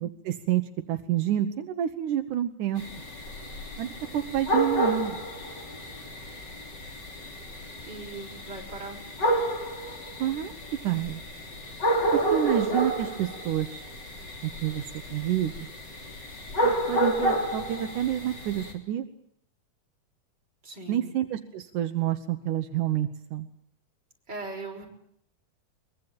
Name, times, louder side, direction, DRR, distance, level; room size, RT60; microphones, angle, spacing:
voice 1, 0.0-2.8 3.8-3.9 4.1-5.2 10.2-10.5 10.8-11.2 12.1-13.9 14.4-14.8 15.1-15.5 16.6-19.1 20.9-23.5, right 11 dB, 80° right, 7 dB, 2.7 m, -28 dB
sound 1, 2.8-18.7, right 1 dB, 35° left, 3.9 m, -30 dB
voice 2, 7.9-9.0 20.6-21.1 24.3-24.9, right 3 dB, 35° right, 1 dB, 6.2 m, -39 dB
23.0 x 22.5 x 8.9 m, 0.70 s
omnidirectional pair, 3.5 m